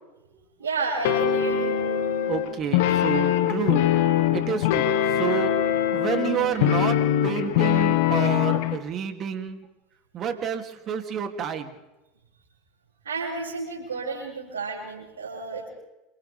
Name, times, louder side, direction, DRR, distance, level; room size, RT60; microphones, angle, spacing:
voice 1, 0.6-1.8 13.0-15.7, right 4 dB, 85° right, -2 dB, 7.4 m, -31 dB
sound 1, 1.0-8.8, left 10 dB, 65° left, 1.8 m, -23 dB
voice 2, 2.3-3.9 4.3-4.9 5.2-5.5 5.9-9.7 10.1-11.7, right 8 dB, 40° right, 5 dB, 3.0 m, -29 dB
29.0 x 27.5 x 3.6 m, 1.0 s
hypercardioid pair, 80°, 0 cm